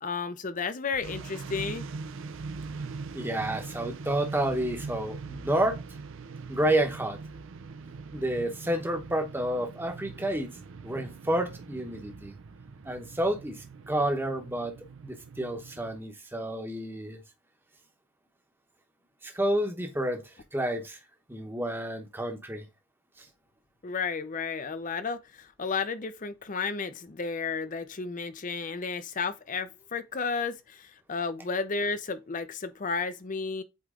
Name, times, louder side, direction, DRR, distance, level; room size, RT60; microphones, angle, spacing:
voice 1, 0.0-1.8 23.8-33.6, left 4 dB, 40° left, 0.6 m, -32 dB
sound 1, 1.0-16.0, right 4 dB, 65° right, 0.5 m, -42 dB
voice 2, 3.1-5.8 6.5-7.2 8.1-10.6 10.8-12.3 12.8-14.8 15.0-17.2 19.2-21.0 21.3-22.7 23.2-23.3, right 1 dB, 10° right, 0.9 m, -30 dB
8.1 x 3.2 x 3.7 m
head